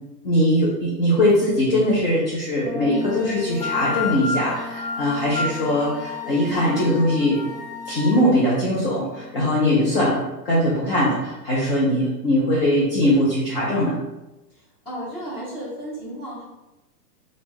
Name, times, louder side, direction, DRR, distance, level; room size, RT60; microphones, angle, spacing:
voice 1, 0.2-7.4 7.9-14.0, left 1 dB, 35° left, -7 dB, 0.7 m, -21 dB
sound 1, 2.7-10.3, left 4 dB, 90° left, 1.0 m, -37 dB
sound 2, 2.9-8.2, left 4 dB, 75° left, 0.7 m, -31 dB
voice 2, 14.5-16.4, equal, 15° left, -9 dB, 1.0 m, -34 dB
3.0 x 2.5 x 3.5 m, 1.0 s
hypercardioid pair, 170°, 49 cm